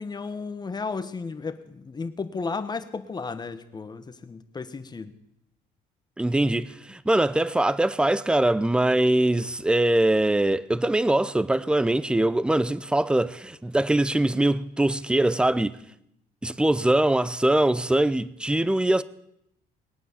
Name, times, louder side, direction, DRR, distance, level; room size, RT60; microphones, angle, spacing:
voice 1, 0.0-5.1, left 4 dB, 25° left, 1.3 m, -34 dB
voice 2, 6.2-15.8 16.4-19.0, right 1 dB, 5° right, 0.6 m, -22 dB
20.5 x 9.0 x 7.3 m
cardioid pair, 110°, 17 cm